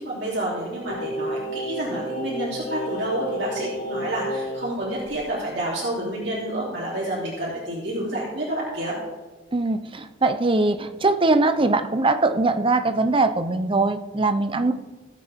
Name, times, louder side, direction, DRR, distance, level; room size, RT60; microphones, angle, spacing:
voice 1, 0.0-9.0, right 1 dB, 65° right, -7 dB, 3.1 m, -29 dB
Singing, 0.9-4.7 5.0-5.1, equal, 60° left, 3.4 m, -31 dB
voice 2, 9.5-14.7, right 3 dB, 30° right, 10 dB, 0.6 m, -21 dB
17.5 x 8.3 x 3.6 m, 1.3 s
head